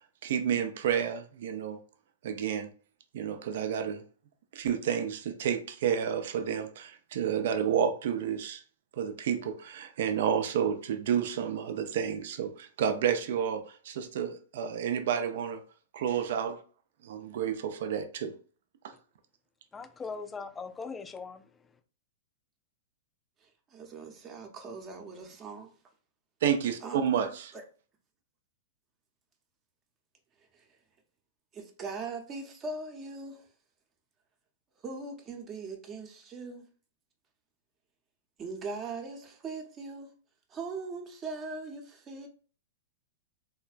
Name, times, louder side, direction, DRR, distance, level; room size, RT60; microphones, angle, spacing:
voice 1, 0.2-1.8 2.2-2.7 3.1-4.0 4.5-8.6 9.0-15.6 15.9-16.6 17.0-18.3 18.8-18.9 26.4-27.5, right 8 dB, 65° right, 0.4 m, -30 dB
voice 2, 19.7-21.7, left 4 dB, 15° left, 0.3 m, -40 dB
voice 3, 23.4-25.7 26.8-27.1 30.5-30.7 31.5-33.5 34.8-36.7 38.4-40.1 40.5-42.3, right 3 dB, 30° right, 0.7 m, -40 dB
3.3 x 2.1 x 2.4 m
hypercardioid pair, 110°, 0 cm